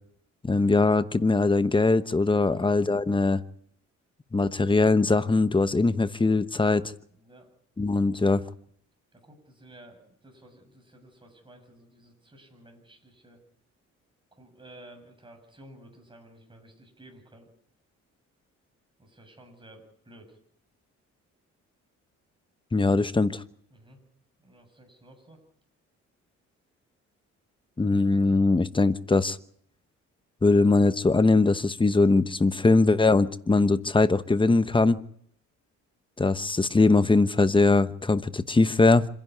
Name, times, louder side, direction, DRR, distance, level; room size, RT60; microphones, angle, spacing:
voice 1, 0.4-3.4 4.3-6.9 7.8-8.4 22.7-23.4 27.8-29.4 30.4-35.0 36.2-39.1, left 3 dB, 15° left, 13 dB, 1.0 m, -21 dB
voice 2, 2.4-2.7 7.1-7.5 9.1-13.4 14.3-17.5 19.0-20.4 23.7-24.0 24.4-25.4, right 1 dB, 15° right, 3 dB, 7.5 m, -53 dB
26.0 x 11.0 x 9.8 m, 0.67 s
cardioid pair, 90°, 30 cm